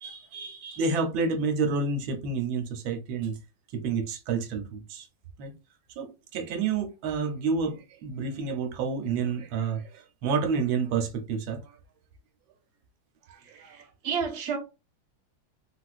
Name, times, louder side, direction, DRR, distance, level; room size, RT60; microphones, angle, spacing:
voice 1, 0.0-3.4 3.7-5.1 5.4-5.5 6.0-11.8 13.3-13.8, right 5 dB, 80° right, 1.4 m, -29 dB
voice 2, 13.5-14.6, right 6 dB, 50° right, 0.8 m, -31 dB
3.8 x 2.4 x 2.3 m
omnidirectional pair, 2.2 m